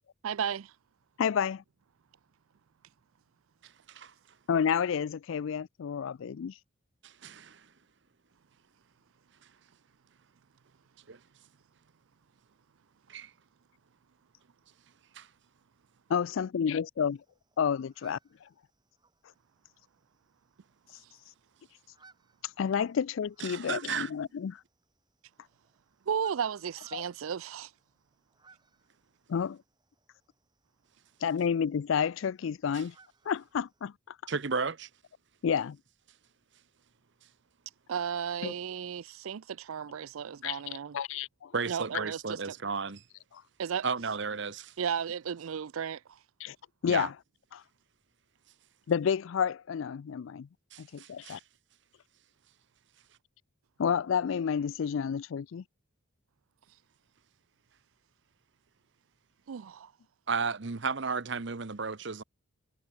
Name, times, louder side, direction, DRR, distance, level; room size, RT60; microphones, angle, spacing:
voice 1, 0.2-0.7 26.1-27.7 37.9-41.0 41.7-42.5 43.6-43.8 44.8-46.2 59.5-59.9, right 7 dB, 80° right, 0.4 m, -34 dB
voice 2, 1.2-1.6 4.5-6.5 16.1-17.2 17.6-18.2 22.6-24.6 26.9-27.0 29.3-29.6 31.2-32.9 33.3-34.2 35.4-35.8 38.4-38.5 40.4-40.6 40.9-41.5 46.4-46.6 46.8-47.1 47.5-47.6 48.9-50.5 50.8-51.4 53.8-55.6, left 7 dB, 70° left, 0.3 m, -30 dB
voice 3, 3.6-4.1 7.0-7.7 11.1-11.2 13.1-13.3 15.1-15.2 23.4-24.1 32.7-32.8 34.3-34.9 41.5-43.0 43.8-44.7 46.9-47.1 50.7-51.4 60.3-62.2, right 5 dB, 55° right, 0.8 m, -34 dB
sound 1, 17.0-33.9, right 4 dB, 20° right, 2.4 m, -66 dB
head